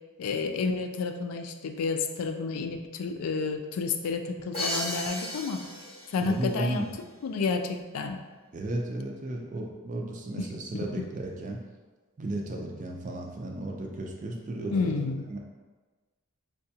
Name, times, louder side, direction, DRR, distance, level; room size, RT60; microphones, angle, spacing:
voice 1, 0.2-5.6 6.1-6.9 7.2-8.2 10.4-11.0 14.7-15.3, left 4 dB, 80° left, 6 dB, 0.4 m, -30 dB
Crash cymbal, 4.5-6.4, left 1 dB, 25° left, 0.8 m, -34 dB
voice 2, 6.2-6.9 8.5-11.6 12.2-15.4, right 1 dB, 35° right, 1 dB, 0.4 m, -34 dB
4.7 x 2.2 x 2.7 m, 1.3 s
head